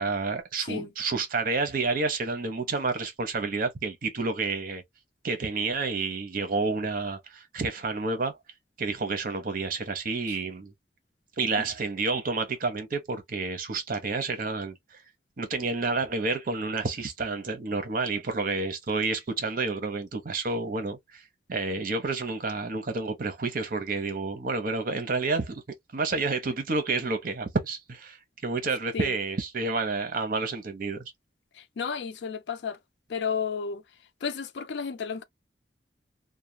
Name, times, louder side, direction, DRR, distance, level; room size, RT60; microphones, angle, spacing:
voice 1, 0.0-4.8 5.2-8.4 8.8-10.7 11.4-15.0 15.4-21.2 21.5-25.6 25.9-31.1, right 3 dB, 55° right, 0.8 m, -29 dB
voice 2, 31.5-32.8 33.1-33.8 34.2-35.2, left 6 dB, 80° left, 0.4 m, -32 dB
2.3 x 2.1 x 2.8 m
head